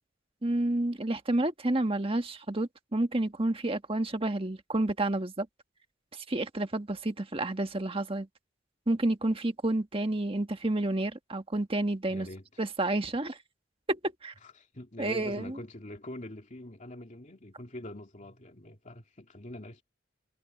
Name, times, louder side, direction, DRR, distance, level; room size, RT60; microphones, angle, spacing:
voice 1, 0.4-5.5 6.1-8.3 8.9-12.3 12.6-13.4 13.9-14.3 15.0-15.6, right 2 dB, 30° right, 1.5 m, -30 dB
voice 2, 12.1-12.6 14.4-19.8, left 1 dB, 40° left, 2.7 m, -44 dB
head